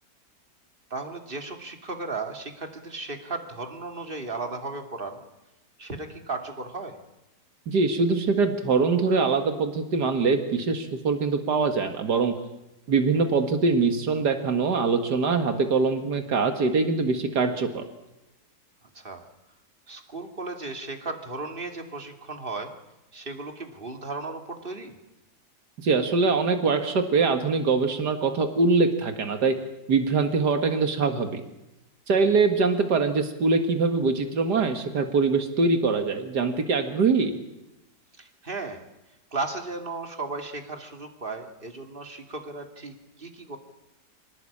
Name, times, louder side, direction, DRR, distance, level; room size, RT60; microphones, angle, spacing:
voice 1, 0.9-5.2 5.8-7.0 13.1-13.4 18.9-19.3 19.9-22.8 23.1-24.9 32.1-32.5 38.2-38.8 39.3-43.6, right 3 dB, 30° right, 5 dB, 2.8 m, -35 dB
voice 2, 7.7-12.3 12.9-17.8 25.8-29.5 29.9-31.4 32.1-37.4, right 4 dB, 85° right, 7 dB, 2.4 m, -23 dB
26.0 x 18.0 x 8.8 m, 0.94 s
omnidirectional pair, 1.7 m